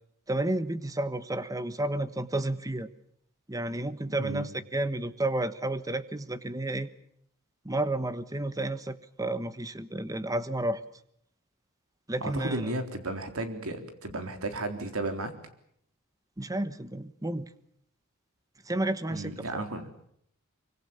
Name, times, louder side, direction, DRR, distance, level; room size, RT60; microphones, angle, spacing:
voice 1, 0.3-2.9 3.5-6.9 7.6-10.8 12.1-12.7 16.4-17.5 18.7-19.6, right 1 dB, 15° right, 13 dB, 1.2 m, -31 dB
voice 2, 4.1-4.5 12.2-15.3 19.1-19.9, right 2 dB, 70° right, 6 dB, 3.8 m, -34 dB
24.5 x 24.5 x 7.1 m, 0.71 s
head